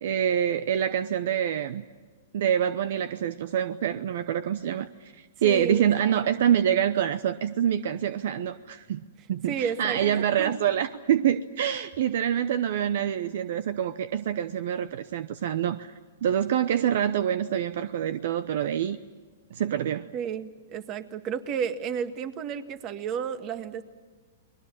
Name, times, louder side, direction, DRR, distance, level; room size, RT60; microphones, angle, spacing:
voice 1, 0.0-1.8 2.3-9.0 9.3-15.9 16.2-19.0 19.5-20.1, right 9 dB, 65° right, 14 dB, 0.8 m, -26 dB
voice 2, 5.4-5.9 9.5-10.5 20.1-23.8, right 7 dB, 35° right, 10 dB, 1.7 m, -32 dB
30.0 x 21.0 x 7.4 m, 1.4 s
hypercardioid pair, 130°, 0 cm